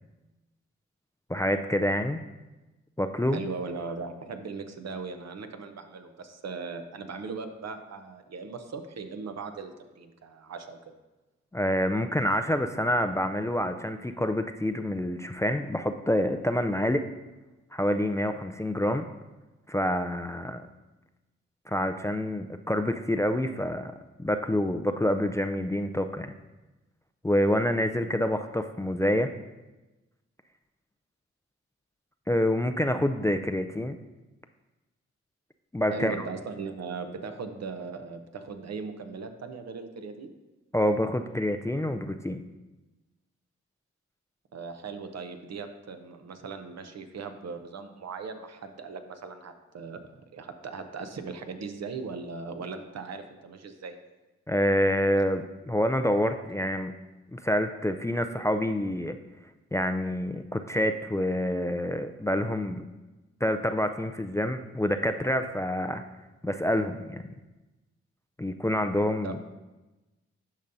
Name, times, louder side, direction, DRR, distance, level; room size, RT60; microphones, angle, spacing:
voice 1, 1.3-2.2 3.0-3.4 11.5-17.0 17.7-19.1 19.7-20.6 21.7-23.9 24.2-26.3 27.2-29.3 32.3-34.0 35.7-36.2 40.7-42.4 54.5-56.9 57.3-59.2 59.7-62.9 63.4-66.0 66.4-67.2 68.4-69.5, left 1 dB, 10° left, 7 dB, 0.4 m, -27 dB
voice 2, 3.3-10.9 35.9-40.3 44.5-50.0 50.3-54.0 69.2-69.4, right 4 dB, 65° right, 7 dB, 0.7 m, -38 dB
10.5 x 5.4 x 2.6 m, 1.1 s
supercardioid pair, 45°, 29 cm